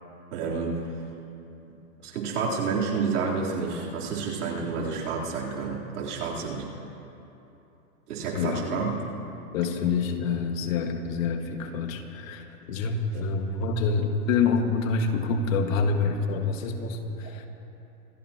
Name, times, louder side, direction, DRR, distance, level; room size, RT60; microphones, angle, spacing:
voice 1, 0.3-0.9 2.0-6.7 8.1-9.0, right 5 dB, 75° right, -3 dB, 3.8 m, -29 dB
voice 2, 8.3-8.6 9.5-17.5, left 4 dB, 60° left, 5 dB, 1.8 m, -27 dB
26.0 x 17.0 x 3.0 m, 2.9 s
hypercardioid pair, 130°, 45 cm